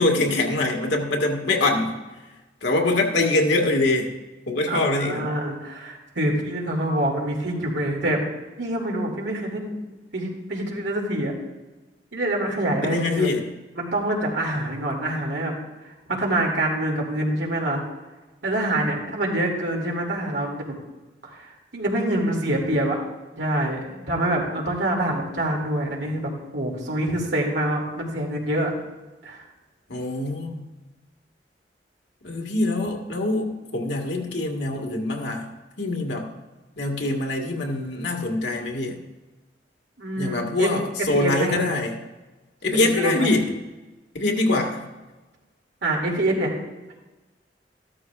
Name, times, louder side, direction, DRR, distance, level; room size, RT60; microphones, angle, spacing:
voice 1, 0.0-2.0 2.6-4.1 4.5-5.3 12.8-13.4 29.9-30.6 32.2-35.5 35.8-36.3 36.8-39.0 40.2-42.0 42.6-43.6 44.2-44.8, left 2 dB, 80° left, 1 dB, 1.7 m, -24 dB
voice 2, 4.7-8.2 8.6-9.8 10.1-11.3 12.1-13.3 13.7-15.6 15.8-17.8 18.4-20.7 21.2-23.0 23.4-28.7 29.2-29.4 40.0-40.7 41.1-41.7 42.7-43.3 45.8-46.5, right 1 dB, 90° right, -1 dB, 2.5 m, -26 dB
14.0 x 12.5 x 2.4 m, 1.2 s
head